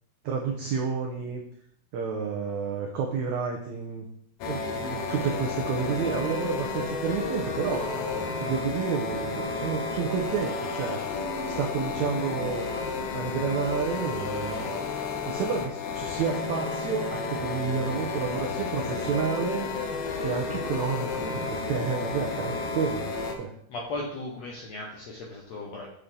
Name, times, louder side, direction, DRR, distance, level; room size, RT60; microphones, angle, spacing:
voice 1, 0.2-1.4 1.9-4.1 4.4-11.0 11.5-12.6 13.1-14.7 15.2-19.7 20.2-23.5, right 6 dB, 85° right, 1 dB, 1.6 m, -30 dB
sound 1, 4.4-23.3, left 4 dB, 80° left, 2.8 m, -32 dB
voice 2, 23.7-25.9, left 2 dB, 65° left, -1 dB, 1.7 m, -36 dB
7.4 x 6.7 x 3.7 m, 0.69 s
omnidirectional pair, 4.4 m